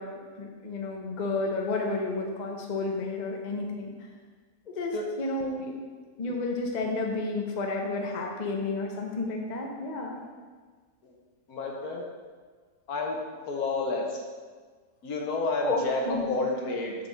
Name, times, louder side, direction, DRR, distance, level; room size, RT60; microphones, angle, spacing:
voice 1, 0.0-3.9 4.7-5.8 6.2-10.2 15.6-16.3, left 3 dB, 35° left, 1 dB, 0.7 m, -31 dB
voice 2, 11.5-12.0 12.9-13.2 13.5-14.2 15.0-17.0, left 3 dB, 65° left, 0 dB, 1.5 m, -30 dB
6.8 x 4.8 x 6.3 m, 1.5 s
omnidirectional pair, 1.8 m